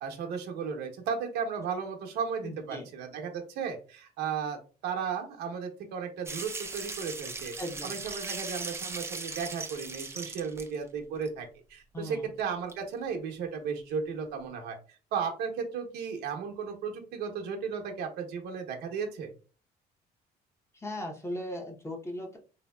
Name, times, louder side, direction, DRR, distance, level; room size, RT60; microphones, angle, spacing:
voice 1, 0.0-4.6 4.8-7.5 7.8-19.3, right 6 dB, 80° right, 2 dB, 0.8 m, -35 dB
voice 2, 2.4-2.9 7.6-8.0 11.9-12.3 20.7-22.4, left 1 dB, 15° left, 2 dB, 0.7 m, -38 dB
sound 1, 6.3-10.8 11.2-11.3 12.4-12.5 12.7-12.8, right 3 dB, 15° right, 0.4 m, -38 dB
3.4 x 2.7 x 2.2 m, 0.37 s
cardioid pair, 110°, 17 cm